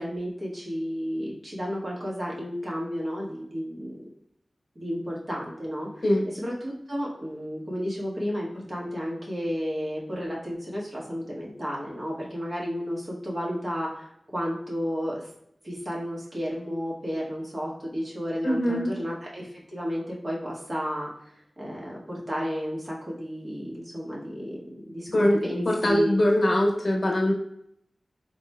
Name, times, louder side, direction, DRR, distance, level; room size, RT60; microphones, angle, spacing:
voice 1, 0.0-4.0 4.7-15.3 15.6-26.1, equal, 45° right, -4 dB, 1.5 m, -32 dB
voice 2, 18.4-18.9 25.1-25.4 25.7-27.3, left 1 dB, 65° left, 0 dB, 1.0 m, -22 dB
4.0 x 3.0 x 2.2 m, 0.73 s
cardioid pair, 45°, 0 cm